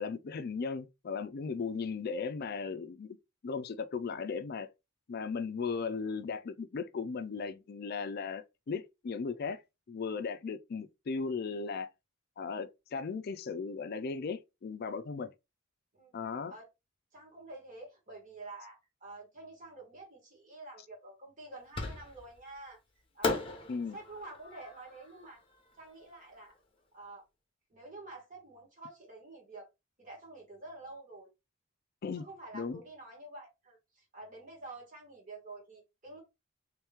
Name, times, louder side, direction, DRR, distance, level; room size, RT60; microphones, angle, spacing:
voice 1, 0.0-3.2 3.4-4.7 5.1-9.6 9.9-11.9 12.4-15.3 16.1-16.5 23.7-24.0 32.0-32.3 32.5-32.8, left 5 dB, 50° left, 0.4 m, -37 dB
voice 2, 17.1-22.8 23.1-25.4 25.8-26.5 26.9-27.2 27.7-29.7 30.0-31.3 32.2-36.2, right 2 dB, 40° right, 1.7 m, -49 dB
Fireworks, 21.7-22.4 23.2-26.3, left 3 dB, 25° left, 0.8 m, -38 dB
3.2 x 3.0 x 3.5 m
head